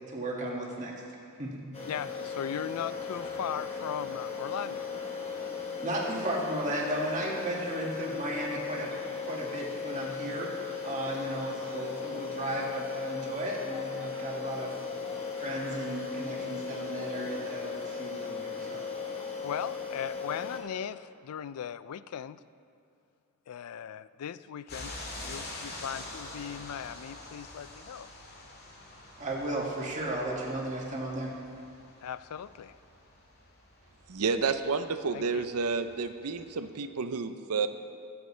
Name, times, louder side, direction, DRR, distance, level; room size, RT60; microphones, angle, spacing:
voice 1, 0.1-0.9 1.4-1.6 5.8-8.9 9.2-14.7 15.4-18.8 29.2-31.3, right 1 dB, 35° right, -3 dB, 2.0 m, -35 dB
sound 1, 1.7-20.6, left 5 dB, 30° left, 1.5 m, -37 dB
voice 2, 1.8-4.9 19.4-22.4 23.5-24.9 25.2-28.1 32.0-32.8 35.1-35.5, left 8 dB, 85° left, 16 dB, 0.4 m, -38 dB
sound 2, 24.7-36.7, left 2 dB, 45° left, 1.9 m, -46 dB
voice 3, 34.1-37.7, right 5 dB, 90° right, 10 dB, 0.6 m, -30 dB
23.5 x 8.0 x 3.3 m, 2.5 s
head